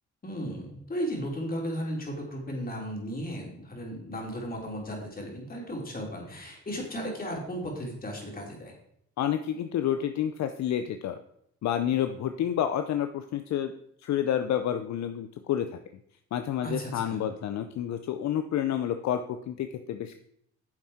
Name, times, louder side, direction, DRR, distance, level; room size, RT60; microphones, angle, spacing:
voice 1, 0.2-8.7 16.6-17.2, equal, 30° left, 0 dB, 3.5 m, -35 dB
voice 2, 9.2-11.2 11.6-13.7 14.0-15.7 16.3-20.2, left 10 dB, 65° left, 8 dB, 0.6 m, -29 dB
9.6 x 7.3 x 4.3 m, 0.71 s
cardioid pair, 90°, 30 cm